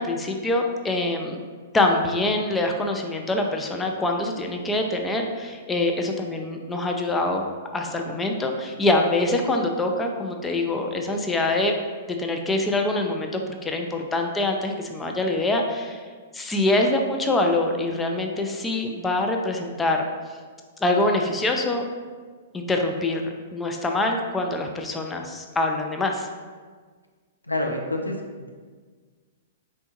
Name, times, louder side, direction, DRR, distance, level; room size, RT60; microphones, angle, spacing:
voice 1, 0.0-1.4 1.7-7.4 7.7-11.7 12.2-16.0 16.3-20.0 20.8-21.9 22.5-23.2 23.5-26.3, left 2 dB, 10° left, 2 dB, 0.3 m, -24 dB
voice 2, 27.5-28.5, left 1 dB, 90° left, 2 dB, 0.3 m, -28 dB
4.2 x 2.2 x 2.8 m, 1.5 s
figure-of-eight pair, 110°, 0 cm